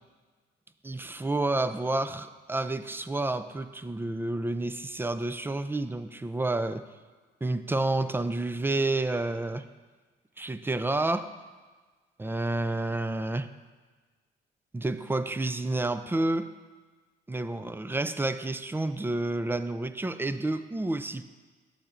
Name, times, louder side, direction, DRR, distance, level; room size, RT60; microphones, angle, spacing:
voice 1, 0.8-6.8 7.4-9.6 10.4-11.3 12.2-13.5 14.7-16.5 17.3-21.2, right 2 dB, 10° right, 12 dB, 0.3 m, -29 dB
12.0 x 6.5 x 2.5 m, 1.4 s
cardioid pair, 90°, 20 cm